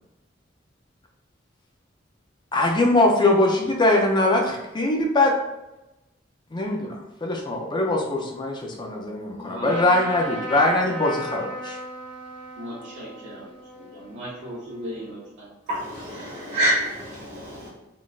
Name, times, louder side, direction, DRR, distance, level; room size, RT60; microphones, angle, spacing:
voice 1, 2.5-5.4 6.5-11.8, left 2 dB, 25° left, 1 dB, 0.5 m, -22 dB
voice 2, 9.4-10.4 12.6-15.5, equal, 70° right, -9 dB, 0.8 m, -38 dB
Trumpet, 9.7-15.2, equal, 10° left, 1.2 m, -36 dB
voice 3, 15.7-17.7, right 1 dB, 50° right, -8 dB, 1.2 m, -27 dB
3.8 x 2.5 x 2.4 m, 0.99 s
head